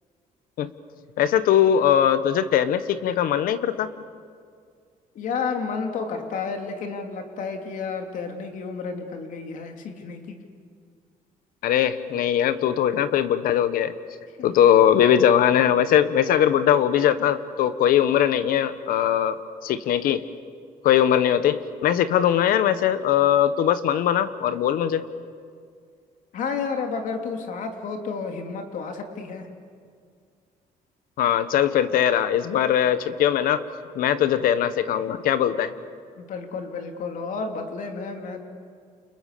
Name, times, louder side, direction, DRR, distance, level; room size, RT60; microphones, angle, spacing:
voice 1, 1.2-3.9 11.6-13.9 14.4-19.4 19.6-20.2 20.8-25.0 31.2-33.6 33.9-35.7, left 10 dB, 80° left, 12 dB, 1.4 m, -20 dB
voice 2, 5.1-10.4 26.3-29.5 36.2-38.4, left 5 dB, 65° left, 4 dB, 3.2 m, -31 dB
29.5 x 29.0 x 6.9 m, 2.2 s
cardioid pair, 145°, 15 cm